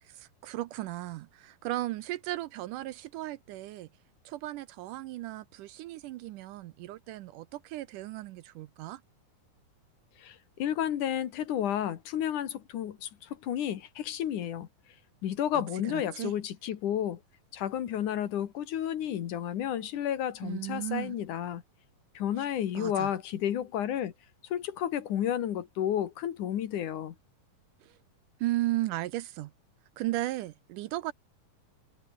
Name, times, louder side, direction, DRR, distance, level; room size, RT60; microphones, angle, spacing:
voice 1, 0.0-3.9 4.3-9.0 15.5-16.3 20.4-21.2 22.4-22.5 22.7-23.1 27.8-28.0 28.4-29.5 30.0-31.1, right 16 dB, 75° right, 2.1 m, -35 dB
voice 2, 10.2-14.7 15.2-17.2 17.5-21.6 22.1-24.1 24.5-27.2, left 10 dB, 65° left, 2.9 m, -31 dB
omnidirectional pair, 4.1 m